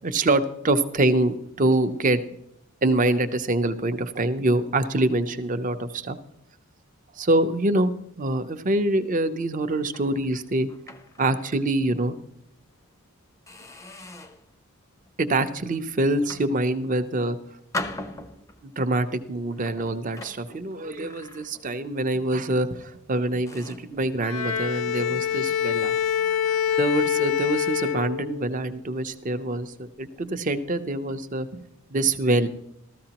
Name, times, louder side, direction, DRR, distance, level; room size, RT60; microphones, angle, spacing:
voice 1, 0.0-2.2 2.8-6.2 7.2-7.9 8.2-10.7 11.2-12.2 15.2-17.4 18.6-26.0 26.8-31.6 31.9-32.5, right 2 dB, 35° right, 10 dB, 0.6 m, -25 dB
sound 1, 9.9-11.7 12.1-12.3 12.8-13.0 13.5-14.5 15.1-15.4 16.1-17.1 17.7-18.7 19.5-21.9 22.1-22.4 23.0-23.1 23.5-24.0, left 2 dB, 15° left, 0.5 m, -40 dB
Bowed string instrument, 24.2-28.6, left 8 dB, 80° left, 0.6 m, -25 dB
14.5 x 13.5 x 2.9 m, 0.78 s
head